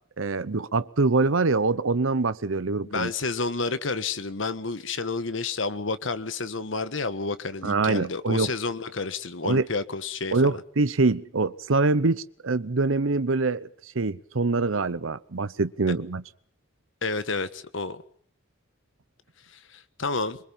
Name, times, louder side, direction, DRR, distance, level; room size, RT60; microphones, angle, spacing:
voice 1, 0.2-3.1 7.6-8.5 9.4-9.7 10.3-16.2, right 3 dB, 85° right, 0.8 m, -24 dB
voice 2, 2.8-10.6 17.0-18.0 19.5-20.4, left 3 dB, 70° left, 1.4 m, -30 dB
24.0 x 23.0 x 5.7 m
head